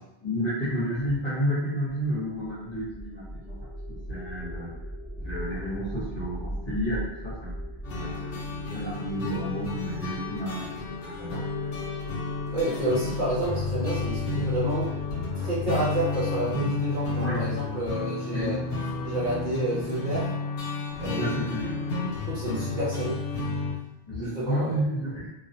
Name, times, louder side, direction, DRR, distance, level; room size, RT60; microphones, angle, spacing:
voice 1, 0.2-4.7 5.2-7.5 7.9-11.7 17.2-17.5 18.3-18.7 21.0-21.8 24.1-25.3, equal, 40° left, -9 dB, 0.8 m, -31 dB
sound 1, 2.3-17.2, equal, 10° right, 0.6 m, -40 dB
sound 2, 7.8-23.7, left 3 dB, 90° left, 0.9 m, -31 dB
voice 2, 12.5-14.9 15.3-18.6 19.0-20.3 21.0-21.2 22.3-23.2 24.2-24.8, right 1 dB, 45° right, -9 dB, 0.9 m, -29 dB
2.4 x 2.0 x 2.6 m, 0.90 s
omnidirectional pair, 1.2 m